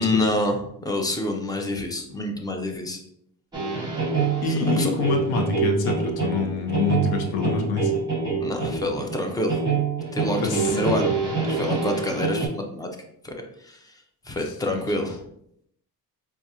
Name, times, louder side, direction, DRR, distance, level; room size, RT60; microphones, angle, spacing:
voice 1, 0.0-3.0 4.5-4.9 8.4-9.6 10.1-11.1 11.5-12.9 13.2-13.3 13.6-13.9 14.3-15.2, left 1 dB, 10° left, 3 dB, 0.3 m, -27 dB
sound 1, 3.5-12.5, right 5 dB, 10° right, 0.8 m, -26 dB
voice 2, 4.4-7.9 10.3-11.0 14.4-14.5, left 5 dB, 90° left, 3 dB, 0.8 m, -26 dB
4.7 x 2.4 x 2.7 m, 0.73 s
cardioid pair, 150°, 37 cm